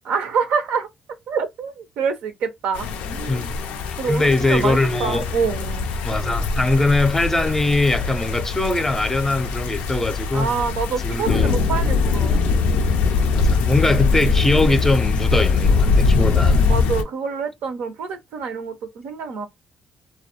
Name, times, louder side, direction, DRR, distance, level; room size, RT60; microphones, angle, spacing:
voice 1, 0.0-0.9 1.3-3.4 4.0-5.9 10.3-12.5 16.7-19.5, right 6 dB, 80° right, 0.5 m, -26 dB
sound 1, 2.7-17.0, left 4 dB, 80° left, 0.3 m, -21 dB
voice 2, 4.1-5.3 6.0-10.5 11.0-11.6 13.3-16.7, left 2 dB, 15° left, 0.5 m, -21 dB
2.2 x 2.0 x 2.7 m
supercardioid pair, 60°, 2 cm